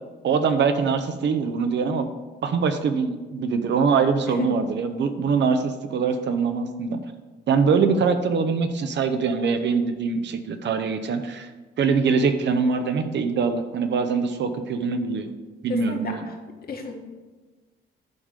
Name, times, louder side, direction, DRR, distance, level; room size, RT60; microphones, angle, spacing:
voice 1, 0.2-2.1 2.4-7.0 7.5-11.5 11.8-15.3 15.6-16.3, right 5 dB, 65° right, 8 dB, 0.9 m, -23 dB
voice 2, 4.3-4.6 15.7-16.3 16.6-16.9, left 4 dB, 50° left, 2 dB, 1.6 m, -31 dB
10.5 x 3.6 x 6.7 m, 1.3 s
cardioid pair, 90°, 20 cm